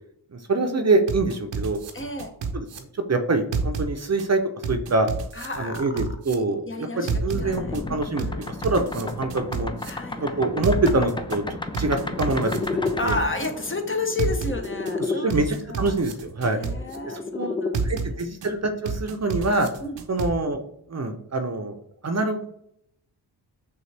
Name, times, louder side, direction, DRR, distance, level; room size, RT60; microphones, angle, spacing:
voice 1, 0.3-1.8 2.5-2.6 3.1-4.4 4.7-5.1 5.6-8.3 8.6-9.7 10.1-11.4 11.8-13.2 15.1-16.6 17.1-17.5 17.8-19.7 20.1-20.6 20.9-21.8 22.0-22.5, right 2 dB, 35° right, 6 dB, 0.7 m, -25 dB
sound 1, 1.1-2.8 3.5-4.3 4.6-6.3 7.1-7.8 8.2-9.9 10.6-11.4 11.7-13.5 14.2-14.9 15.3-17.0 17.7-18.5 18.9-20.3, right 5 dB, 75° right, 0.7 m, -30 dB
voice 2, 1.9-2.3 5.3-5.8 6.6-7.8 8.2-8.5 9.8-10.4 13.0-16.0 16.5-17.9 19.8-20.0, left 3 dB, 30° left, 5 dB, 0.8 m, -31 dB
sound 2, 7.3-15.2 16.5-17.8, left 3 dB, 10° left, 0.4 m, -32 dB
6.5 x 2.5 x 3.3 m, 0.74 s
cardioid pair, 60°, 44 cm